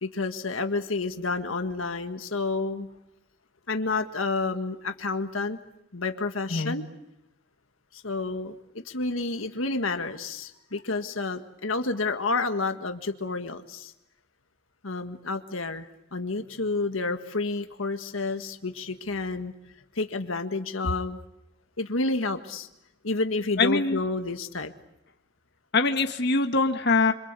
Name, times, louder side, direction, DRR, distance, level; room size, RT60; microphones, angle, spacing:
voice 1, 0.0-2.9 3.7-5.6 5.9-6.9 7.9-8.6 8.9-13.9 14.8-19.5 20.0-21.2 21.8-22.7 23.0-24.7, left 3 dB, 85° left, 7 dB, 1.7 m, -30 dB
voice 2, 23.6-24.0 25.7-27.1, left 3 dB, 55° left, 6 dB, 1.8 m, -23 dB
27.5 x 26.0 x 8.3 m, 0.85 s
head